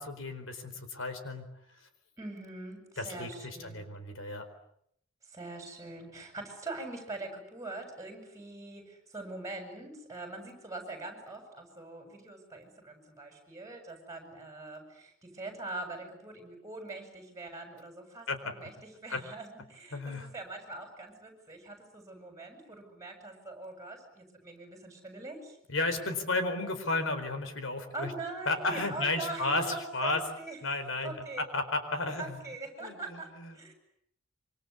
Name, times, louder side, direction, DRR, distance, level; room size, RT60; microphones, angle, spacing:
voice 1, 0.0-1.5 3.0-4.4 18.3-18.5 19.1-19.2 19.9-20.3 25.7-28.1 28.5-29.7 29.9-30.2 30.6-31.1 31.5-32.4 32.8-33.7, left 2 dB, 80° left, 9 dB, 4.5 m, -33 dB
voice 2, 2.2-3.9 5.3-25.6 27.9-30.6 31.0-31.4 32.2-33.7, right 2 dB, 15° right, 4 dB, 7.5 m, -43 dB
26.5 x 26.0 x 8.5 m, 0.73 s
head